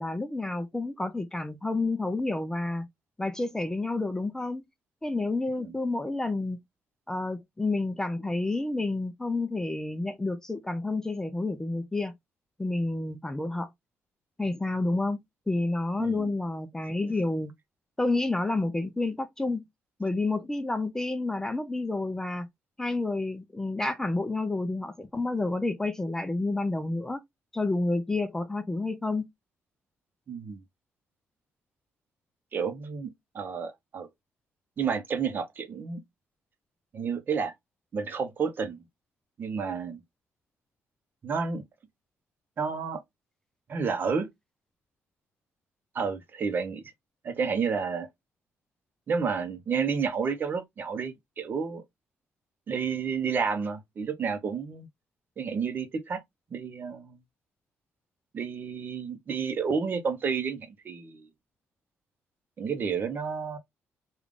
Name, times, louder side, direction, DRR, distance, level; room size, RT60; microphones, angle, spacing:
voice 1, 0.0-2.9 3.2-4.6 5.0-6.6 7.1-12.1 12.6-13.7 14.4-17.5 18.0-19.6 20.0-22.5 22.8-27.2 27.5-29.3, left 2 dB, 10° left, 0.4 m, -29 dB
voice 2, 30.3-30.6 32.5-34.1 34.8-36.0 36.9-37.5 37.9-38.8 39.4-40.0 41.2-41.6 42.6-43.0 43.7-44.3 45.9-46.8 47.2-48.1 49.1-51.8 52.7-54.9 55.4-56.2 56.5-57.2 58.3-61.3 62.6-63.6, right 6 dB, 40° right, 0.7 m, -30 dB
3.6 x 2.3 x 3.4 m
cardioid pair, 130°, 5 cm